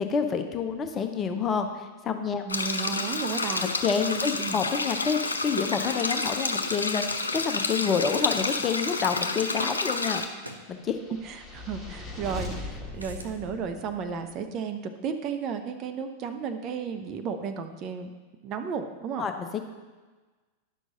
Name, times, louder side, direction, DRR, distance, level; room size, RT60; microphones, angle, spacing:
voice 1, 0.0-2.4 3.6-10.2 10.7-11.0 19.2-19.6, left 6 dB, 25° left, 6 dB, 0.7 m, -28 dB
voice 2, 2.4-3.7 4.4-4.6 11.2-18.1 18.4-19.3, right 6 dB, 35° right, 6 dB, 0.6 m, -33 dB
sound 1, 2.5-10.2, left 3 dB, 75° left, 0.5 m, -29 dB
sound 2, 10.4-10.7 12.9-13.4, right 1 dB, 80° right, 0.7 m, -44 dB
sound 3, 10.8-14.2, left 2 dB, ahead, 1.7 m, -39 dB
10.5 x 6.2 x 3.9 m, 1.3 s
figure-of-eight pair, 90°, 0 cm